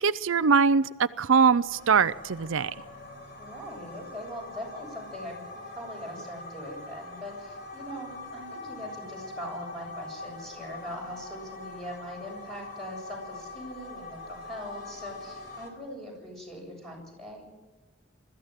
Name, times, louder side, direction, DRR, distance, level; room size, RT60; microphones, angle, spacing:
voice 1, 0.0-2.7, right 5 dB, 85° right, 14 dB, 0.5 m, -22 dB
sound 1, 1.3-15.7, left 2 dB, 50° left, 4.4 m, -43 dB
voice 2, 3.4-17.5, equal, ahead, -1 dB, 7.3 m, -41 dB
21.5 x 14.5 x 9.1 m, 1.3 s
head